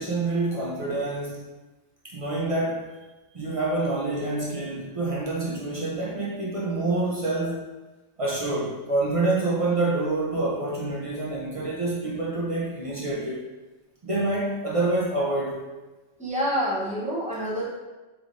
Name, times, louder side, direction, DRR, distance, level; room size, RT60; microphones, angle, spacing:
voice 1, 0.0-1.5 2.0-3.0 3.3-7.6 8.2-13.4 14.0-15.6, right 2 dB, 60° right, -5 dB, 0.3 m, -27 dB
voice 2, 16.2-17.7, equal, 5° right, -8 dB, 0.8 m, -27 dB
3.3 x 3.0 x 2.5 m, 1.1 s
omnidirectional pair, 1.3 m